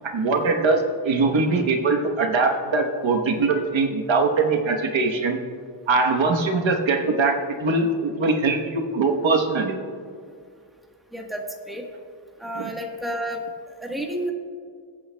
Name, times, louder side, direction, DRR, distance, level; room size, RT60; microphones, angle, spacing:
voice 1, 0.1-5.4 5.9-9.8 12.5-12.7, right 3 dB, 80° right, 2 dB, 1.1 m, -22 dB
voice 2, 11.1-11.8 12.4-13.4 13.7-14.3, right 1 dB, ahead, 0 dB, 1.2 m, -31 dB
23.0 x 8.7 x 2.2 m, 2.2 s
wide cardioid pair, 135°, 46 cm